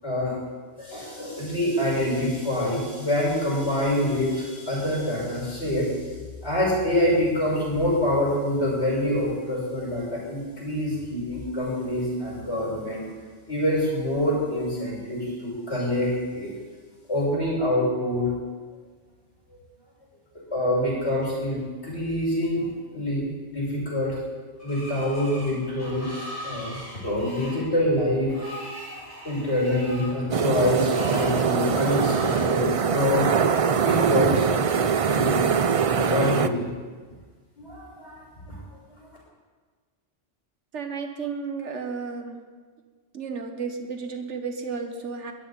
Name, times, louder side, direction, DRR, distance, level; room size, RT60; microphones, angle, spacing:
voice 1, 0.0-0.4 0.8-6.1 6.4-13.1 13.5-16.5 17.1-18.3 20.5-24.2 24.6-26.1 26.4-28.3 29.1-33.3 33.8-34.5 35.1-35.4 35.9-36.7 37.6-38.6 38.9-39.0, left 1 dB, 65° left, -5 dB, 7.0 m, -26 dB
Screech, 24.6-32.6, equal, 10° left, 5.5 m, -40 dB
sound 1, 30.3-36.5, right 6 dB, 50° right, 0.4 m, -23 dB
voice 2, 40.7-42.4 43.1-45.3, right 5 dB, 75° right, 5 dB, 1.7 m, -33 dB
21.5 x 13.5 x 4.2 m, 1.5 s
omnidirectional pair, 1.2 m